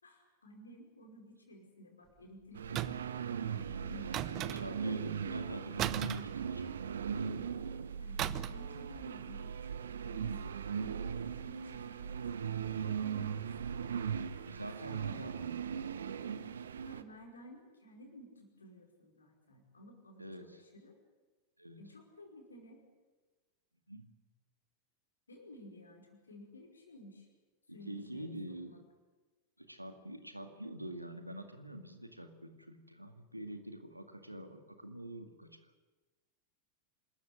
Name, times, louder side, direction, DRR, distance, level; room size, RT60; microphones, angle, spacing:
voice 1, 0.0-4.8 5.2-5.4 8.0-14.0 14.3-14.5 14.8-15.4 16.8-21.0 21.8-22.8 25.3-27.3 27.7-28.8, equal, 75° left, 2 dB, 5.1 m, -55 dB
sound 1, 2.5-17.0, right 7 dB, 65° right, 1.0 m, -39 dB
sound 2, 2.7-3.2 4.1-4.9 5.8-7.0 8.2-8.7 8.9-9.2, right 13 dB, 35° right, 0.8 m, -37 dB
voice 2, 4.3-6.7 14.5-15.3 20.2-20.6 21.6-21.8 23.9-24.1 27.7-28.8 29.6-35.6, right 1 dB, 90° right, 7 dB, 2.0 m, -46 dB
26.5 x 14.0 x 9.9 m, 1.3 s
figure-of-eight pair, 90°, 0 cm